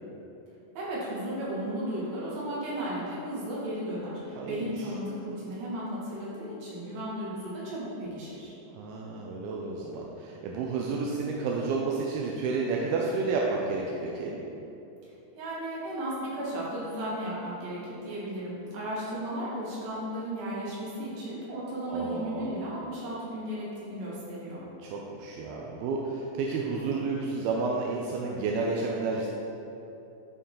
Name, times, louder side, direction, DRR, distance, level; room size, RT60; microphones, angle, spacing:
voice 1, 0.7-8.5 15.0-24.6, right 1 dB, 60° right, -7 dB, 3.3 m, -35 dB
voice 2, 8.8-14.4 21.9-22.6 24.8-29.3, right 4 dB, 80° right, -2 dB, 2.3 m, -31 dB
11.0 x 4.4 x 3.8 m, 3.0 s
omnidirectional pair, 4.8 m